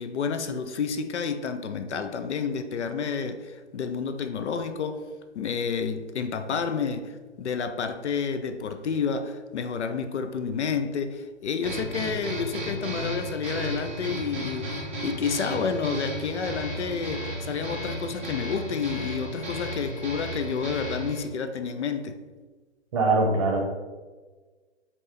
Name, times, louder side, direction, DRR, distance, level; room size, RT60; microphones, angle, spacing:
voice 1, 0.0-5.1 5.3-22.2, left 6 dB, 75° left, 9 dB, 0.5 m, -30 dB
sound 1, 11.6-21.2, equal, 10° right, 0.3 m, -34 dB
voice 2, 22.9-23.6, right 3 dB, 30° right, 1 dB, 0.7 m, -22 dB
4.2 x 2.8 x 3.3 m, 1.3 s
hypercardioid pair, 140°, 35 cm